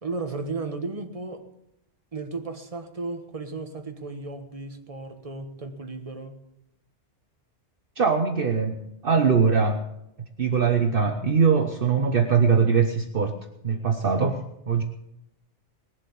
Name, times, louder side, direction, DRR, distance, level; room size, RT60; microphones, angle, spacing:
voice 1, 0.0-1.5 2.1-6.4, right 3 dB, 30° right, 1.5 m, -34 dB
voice 2, 8.0-9.8 10.4-13.4 13.6-14.8, right 5 dB, 55° right, 1.1 m, -22 dB
20.0 x 7.7 x 8.4 m
omnidirectional pair, 1.2 m